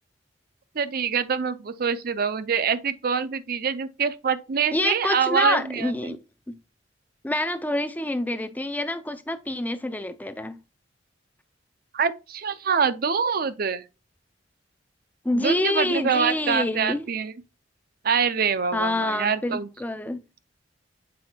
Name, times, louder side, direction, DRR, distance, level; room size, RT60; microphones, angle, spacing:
voice 1, 0.8-6.1 11.9-13.8 15.3-17.3 18.0-19.7, right 6 dB, 50° right, 0.5 m, -25 dB
voice 2, 4.7-6.2 6.5-6.6 7.2-10.6 15.2-17.1 18.7-20.2, left 1 dB, 10° left, 0.5 m, -27 dB
7.7 x 4.4 x 2.8 m
head